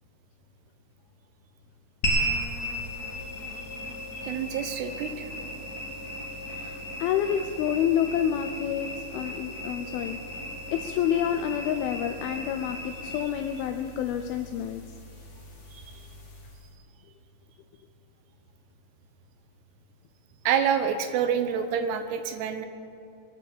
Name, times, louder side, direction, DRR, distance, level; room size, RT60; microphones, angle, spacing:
sound 1, 2.0-16.6, equal, 40° left, 1.3 m, -36 dB
voice 1, 4.1-5.3 15.7-15.8 20.5-22.7, right 8 dB, 80° right, 8 dB, 2.9 m, -27 dB
voice 2, 6.4-10.2 10.7-14.8, left 9 dB, 80° left, 7 dB, 2.2 m, -28 dB
22.5 x 8.2 x 7.3 m, 2.6 s
omnidirectional pair, 5.0 m